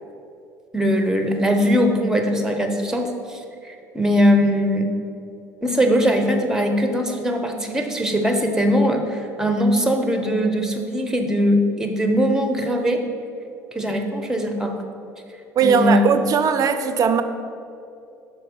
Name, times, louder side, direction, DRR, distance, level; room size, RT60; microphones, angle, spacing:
voice 1, 0.7-4.9 5.6-13.0 13.7-14.8 15.6-16.2, equal, 5° right, 4 dB, 0.8 m, -21 dB
voice 2, 15.6-17.2, right 6 dB, 40° right, 10 dB, 0.4 m, -18 dB
5.6 x 4.3 x 5.3 m, 2.6 s
hypercardioid pair, 60°, 9 cm